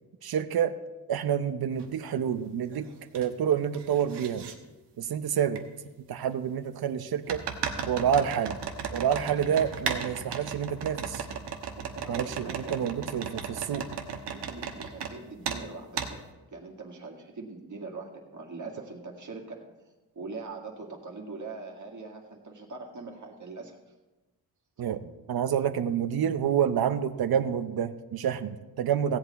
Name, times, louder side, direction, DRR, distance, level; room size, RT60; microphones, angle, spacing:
voice 1, 0.2-0.8 1.1-2.9 3.1-4.5 5.0-5.6 6.0-7.4 7.9-8.6 8.9-11.3 12.1-13.9 24.8-29.2, right 8 dB, 65° right, 11 dB, 0.8 m, -28 dB
sound 1, 1.8-1.9 2.4-3.3 3.5-4.5 5.5-5.6 7.3-15.1 15.4-15.6 16.0-16.1, right 6 dB, 85° right, 1.2 m, -35 dB
voice 2, 11.9-12.8 13.1-16.2 16.5-19.7 20.2-23.8, right 3 dB, 50° right, 0 dB, 2.0 m, -42 dB
16.0 x 8.1 x 4.1 m, 1.1 s
cardioid pair, 90°, 40 cm